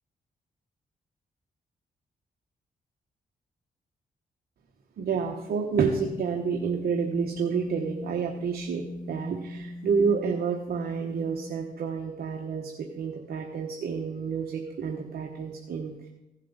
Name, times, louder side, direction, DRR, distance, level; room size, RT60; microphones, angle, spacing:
voice 1, 5.0-16.1, right 6 dB, 70° right, 2 dB, 1.1 m, -29 dB
sound 1, 6.1-11.5, left 1 dB, 50° left, 1.9 m, -38 dB
15.5 x 7.5 x 3.9 m, 0.98 s
cardioid pair, 80°, 16 cm